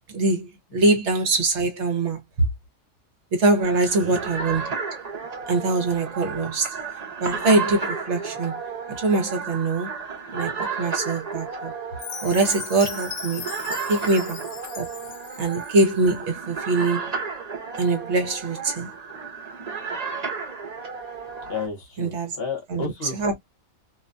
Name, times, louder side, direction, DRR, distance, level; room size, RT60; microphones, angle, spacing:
voice 1, 0.1-2.2 3.4-4.7 5.5-6.7 7.2-8.6 9.0-10.0 10.3-10.5 10.8-11.7 12.2-13.5 13.9-14.4 14.8-14.9 15.4-17.1 17.8-18.9 22.0-22.3 22.7-22.8 23.1-23.4, right 3 dB, 60° right, 1.0 m, -23 dB
sound 1, 3.6-21.7, right 5 dB, 40° right, 0.6 m, -33 dB
Chime, 12.0-16.1, left 9 dB, 75° left, 1.0 m, -38 dB
voice 2, 21.4-23.3, left 4 dB, 50° left, 1.0 m, -32 dB
2.5 x 2.1 x 2.5 m
omnidirectional pair, 1.4 m